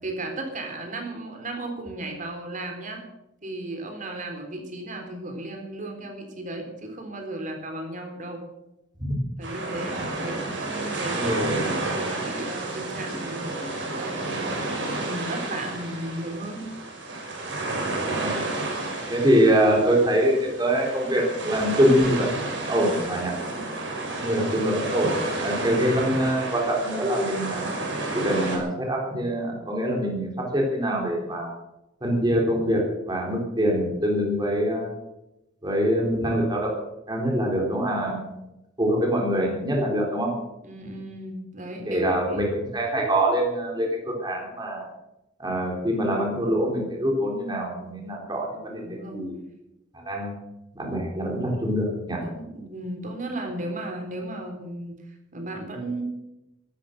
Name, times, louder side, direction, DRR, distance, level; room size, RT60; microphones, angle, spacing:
voice 1, 0.0-3.0 3.4-8.4 9.4-11.4 11.9-13.5 13.9-16.7 40.6-42.5 48.8-49.2 52.2-56.0, right 1 dB, 45° right, 4 dB, 3.7 m, -35 dB
sound 1, 9.4-28.6, right 2 dB, 75° right, 5.1 m, -31 dB
voice 2, 11.2-11.7 18.0-18.4 19.1-23.3 24.2-25.1 25.4-27.7 28.1-31.5 32.0-34.9 35.6-36.7 37.1-38.4 38.8-40.3 41.9-44.9 45.4-49.3 49.9-50.3 50.8-52.2, equal, 25° right, 0 dB, 3.9 m, -24 dB
14.0 x 13.0 x 6.7 m, 0.91 s
head